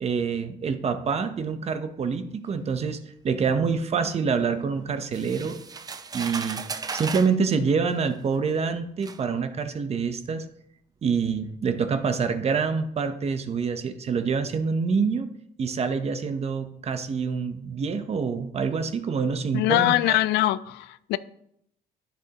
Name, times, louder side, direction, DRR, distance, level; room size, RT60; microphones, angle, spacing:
voice 1, 0.0-5.6 6.1-6.6 6.9-10.4 11.0-15.3 15.6-20.2, right 5 dB, 40° right, 0.8 m, -26 dB
sound 1, 5.1-7.4 8.3-8.4 9.0-9.2, right 5 dB, 20° right, 0.5 m, -35 dB
voice 2, 19.5-21.2, left 15 dB, 80° left, 0.4 m, -23 dB
10.0 x 6.8 x 2.9 m
cardioid pair, 110°, 17 cm